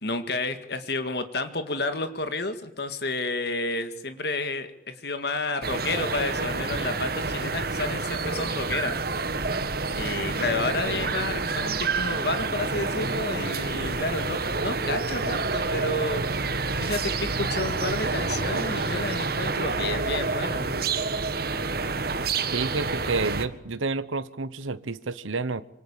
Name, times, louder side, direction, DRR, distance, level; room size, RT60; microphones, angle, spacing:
voice 1, 0.0-9.0 9.9-16.3 16.8-20.7, left 2 dB, 55° left, 9 dB, 2.0 m, -31 dB
sound 1, 5.6-23.5, right 3 dB, 50° right, 1.7 m, -28 dB
voice 2, 22.5-25.6, right 3 dB, 85° right, 14 dB, 1.0 m, -29 dB
26.0 x 25.5 x 8.9 m, 0.78 s
head